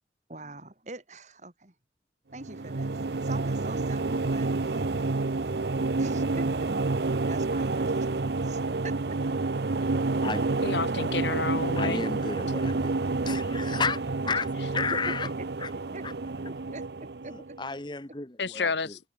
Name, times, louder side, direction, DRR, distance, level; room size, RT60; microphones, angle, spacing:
voice 1, 0.3-1.7 2.3-5.2 6.0-6.5 6.8-6.9 7.2-9.0 14.8-15.1 15.9-16.0 16.4-17.6, right 2 dB, 40° right, 2.4 m, -43 dB
sound 1, 2.3-17.7, right 3 dB, 70° right, 0.8 m, -29 dB
voice 2, 10.6-12.0 18.4-19.0, left 4 dB, 80° left, 1.7 m, -30 dB
voice 3, 11.8-13.0 13.2-15.3 15.6-15.7 16.0-16.1 17.3-19.0, left 4 dB, 25° left, 1.2 m, -33 dB
open air
head